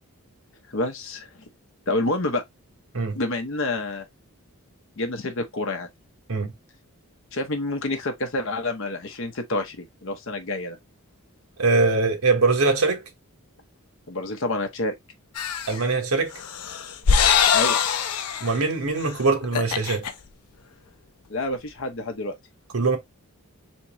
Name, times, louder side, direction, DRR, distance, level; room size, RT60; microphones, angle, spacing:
voice 1, 0.7-1.3 1.9-2.4 3.2-4.0 5.0-5.9 7.3-10.8 14.1-15.0 17.5-17.8 21.3-22.4, left 2 dB, 60° left, 0.8 m, -28 dB
voice 2, 11.6-13.0 15.7-16.3 18.4-20.0 22.7-23.0, right 3 dB, 75° right, 1.1 m, -22 dB
sound 1, 15.4-15.8 16.4-18.6 19.0-19.1 19.4-20.1, left 7 dB, 90° left, 0.5 m, -22 dB
3.6 x 3.0 x 2.8 m
head